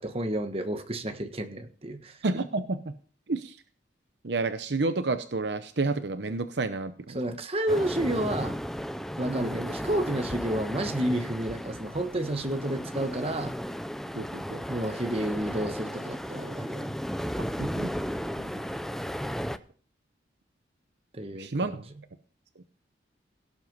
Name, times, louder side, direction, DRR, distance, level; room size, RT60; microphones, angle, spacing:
voice 1, 0.0-2.2 7.1-8.6 9.2-13.5 14.7-16.9 21.1-21.8, right 1 dB, 30° right, 7 dB, 1.5 m, -30 dB
voice 2, 2.2-2.8 3.3-3.6 4.2-7.2 9.3-9.7 14.2-14.6 17.6-17.9 18.5-18.6 21.4-21.8, right 3 dB, 65° right, 10 dB, 0.8 m, -30 dB
sound 1, 7.7-19.6, equal, ahead, 0.6 m, -35 dB
17.0 x 7.9 x 5.4 m, 0.42 s
head